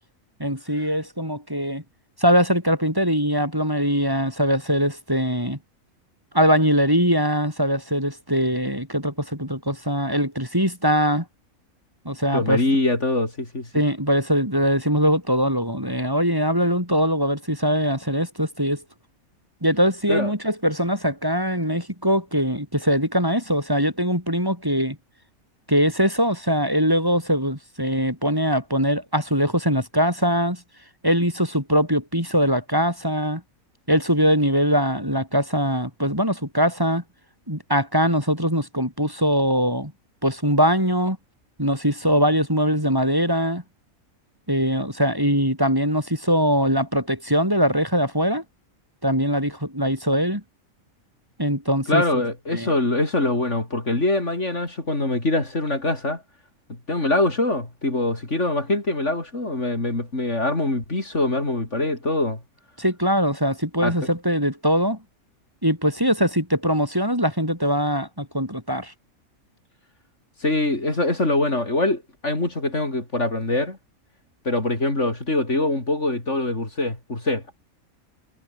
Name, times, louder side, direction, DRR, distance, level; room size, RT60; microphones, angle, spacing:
voice 1, 0.4-1.8 2.2-5.6 6.3-11.3 12.1-12.6 13.7-18.8 19.6-25.0 25.7-30.6 31.0-33.4 33.9-37.0 37.5-39.9 40.2-41.2 41.6-43.6 44.5-48.4 49.0-50.4 51.4-52.2 52.5-52.7 62.8-65.0 65.6-68.9, equal, 15° right, 6.9 m, -22 dB
voice 2, 12.3-13.7 20.1-20.3 51.9-56.2 56.9-62.4 63.8-63.9 70.4-73.8 74.4-77.4, left 2 dB, 55° left, 5.0 m, -23 dB
omnidirectional pair, 1.5 m